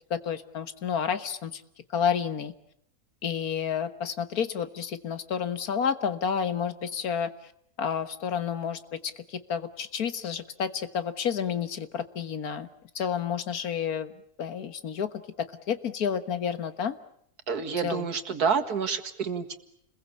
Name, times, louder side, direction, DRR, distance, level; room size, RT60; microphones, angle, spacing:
voice 1, 0.1-1.6 1.9-2.5 3.2-7.3 7.8-12.7 12.9-14.1 14.4-15.1 15.4-17.0 17.8-18.0, left 7 dB, 75° left, 12 dB, 1.8 m, -30 dB
voice 2, 17.5-19.6, right 6 dB, 85° right, 7 dB, 2.3 m, -28 dB
30.0 x 21.5 x 8.5 m, 0.70 s
omnidirectional pair, 1.6 m